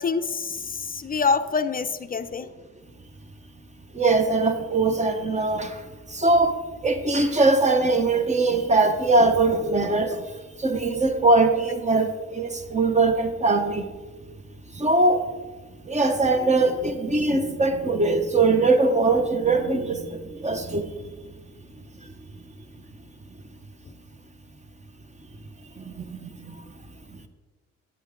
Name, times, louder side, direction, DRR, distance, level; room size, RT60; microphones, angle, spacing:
voice 1, 0.0-2.5, left 5 dB, 30° left, 10 dB, 0.5 m, -26 dB
voice 2, 3.9-5.8 6.1-6.6 6.8-10.3 10.6-13.9 14.7-15.3 15.8-21.1 25.8-26.6, right 3 dB, 25° right, 8 dB, 1.1 m, -21 dB
11.0 x 8.2 x 3.7 m, 1.3 s
cardioid pair, 90°, 30 cm